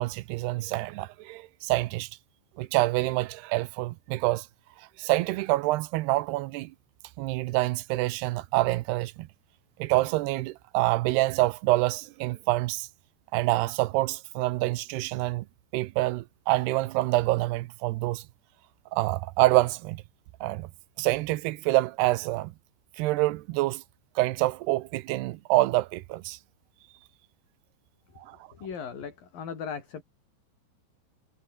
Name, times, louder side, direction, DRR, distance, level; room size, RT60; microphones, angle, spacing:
voice 1, 0.0-2.1 2.6-4.5 4.8-6.7 7.2-9.3 9.8-12.9 13.3-15.5 15.7-18.2 18.9-20.0 20.4-20.7 21.0-22.5 23.0-23.8 24.2-26.4 28.2-28.4, right 19 dB, 80° right, 2.6 m, -26 dB
voice 2, 28.5-30.0, left 6 dB, 50° left, 6.0 m, -37 dB
omnidirectional pair, 5.1 m